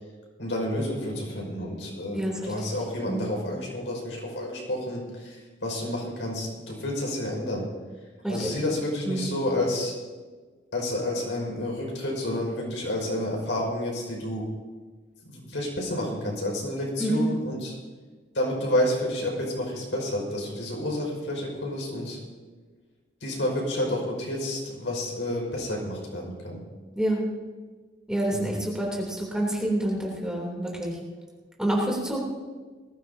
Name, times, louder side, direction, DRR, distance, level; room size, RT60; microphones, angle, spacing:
voice 1, 0.4-7.7 8.3-9.9 10.7-14.4 15.3-17.7 18.3-22.2 23.2-26.6 28.3-28.6, left 1 dB, 85° left, -2 dB, 5.4 m, -30 dB
voice 2, 2.1-2.5 3.1-3.3 8.2-8.5 9.0-9.3 17.0-17.3 26.9-27.2 28.1-31.0 31.6-32.2, right 1 dB, 5° right, -3 dB, 3.2 m, -27 dB
20.5 x 15.5 x 2.8 m, 1.4 s
head